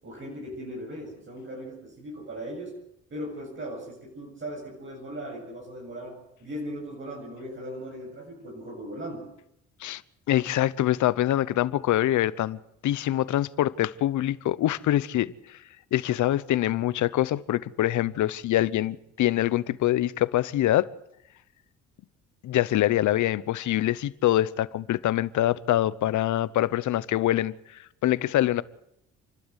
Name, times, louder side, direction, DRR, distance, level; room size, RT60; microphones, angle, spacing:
voice 1, 0.0-2.8 3.1-9.3, equal, 40° right, 7.7 m, -38 dB
voice 2, 10.3-12.6 12.8-15.6 15.9-20.9 22.4-27.5 28.0-28.6, left 13 dB, 75° left, 0.9 m, -24 dB
28.5 x 12.5 x 8.2 m
cardioid pair, 90°, 30 cm